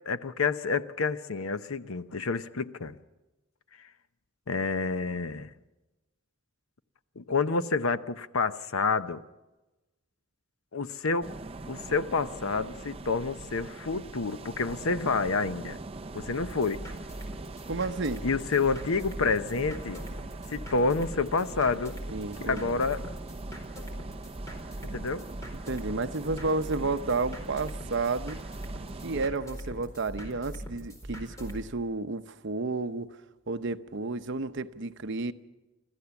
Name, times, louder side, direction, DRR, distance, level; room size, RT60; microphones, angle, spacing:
voice 1, 0.1-3.0 3.8-3.9 4.5-5.5 7.2-9.2 10.7-11.3 11.7-15.8 16.1-16.8 18.2-20.0 20.5-21.9 22.4-23.0 24.9-25.2, left 4 dB, 85° left, 12 dB, 0.8 m, -29 dB
sound 1, 11.2-29.3, right 3 dB, 30° right, 0.6 m, -42 dB
sound 2, 16.4-31.6, equal, 15° left, 4.3 m, -41 dB
voice 2, 17.7-18.2 22.1-22.9 25.7-28.4 29.0-33.1 33.5-35.3, right 3 dB, 60° right, 10 dB, 0.8 m, -31 dB
25.0 x 14.5 x 7.1 m, 1.1 s
head